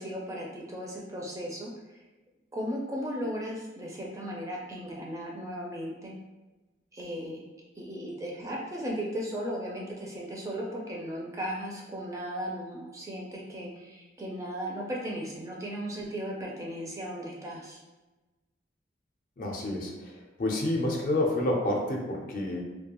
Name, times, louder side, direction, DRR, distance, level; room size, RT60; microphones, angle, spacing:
voice 1, 0.0-1.7 2.5-6.1 6.9-7.4 7.8-17.8, equal, 20° right, -3 dB, 0.4 m, -36 dB
voice 2, 19.4-20.1 20.4-22.6, left 1 dB, 50° left, 0 dB, 0.4 m, -29 dB
2.3 x 2.2 x 2.9 m, 1.1 s
head